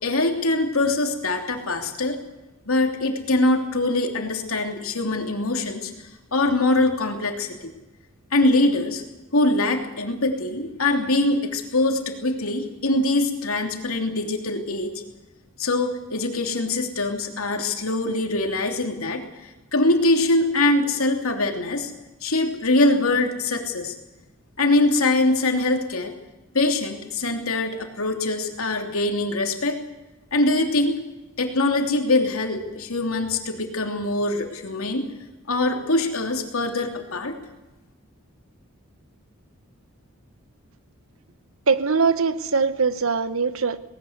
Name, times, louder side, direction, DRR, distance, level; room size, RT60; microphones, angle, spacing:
voice 1, 0.0-2.2 2.7-5.9 6.3-7.7 8.3-9.0 9.3-14.9 15.6-19.2 19.7-21.9 22.2-23.9 24.6-26.1 26.5-29.8 30.3-31.0 31.4-35.1 35.5-37.4, left 2 dB, 90° left, 4 dB, 3.1 m, -23 dB
voice 2, 41.7-43.8, right 5 dB, 80° right, 12 dB, 1.2 m, -22 dB
19.0 x 18.5 x 8.1 m, 1.1 s
head